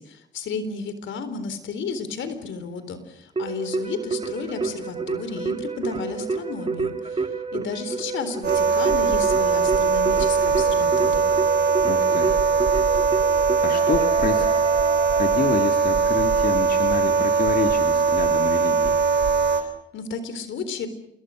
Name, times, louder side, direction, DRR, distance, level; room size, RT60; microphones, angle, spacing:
voice 1, 0.0-7.3 7.5-11.3 19.5-20.9, left 5 dB, 75° left, 11 dB, 4.0 m, -33 dB
Keyboard (musical), 3.4-15.8, right 4 dB, 30° right, 2.6 m, -30 dB
sound 1, 8.4-19.6, right 5 dB, 60° right, 3.6 m, -20 dB
voice 2, 11.9-12.3 13.6-14.6 15.1-19.0, left 5 dB, 50° left, 5 dB, 2.9 m, -28 dB
28.0 x 22.5 x 6.5 m, 0.79 s
cardioid pair, 90°, 20 cm